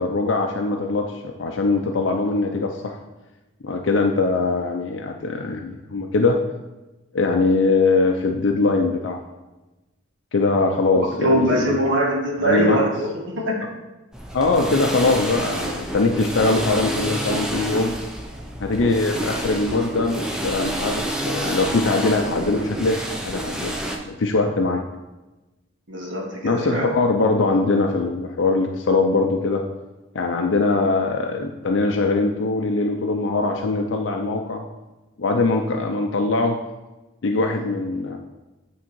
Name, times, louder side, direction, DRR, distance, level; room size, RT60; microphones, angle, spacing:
voice 1, 0.0-3.0 3.6-6.4 7.1-9.2 10.3-11.8 12.4-12.8 14.3-17.9 18.6-23.7 24.1-24.8 26.4-29.6 30.1-34.6 35.2-36.6 37.2-38.2, left 3 dB, 70° left, 3 dB, 0.5 m, -22 dB
voice 2, 11.2-13.7 25.9-26.9, equal, 70° right, -1 dB, 1.7 m, -22 dB
sound 1, 14.1-24.0, right 1 dB, 5° right, 0.6 m, -28 dB
8.6 x 3.7 x 4.5 m, 1.1 s
head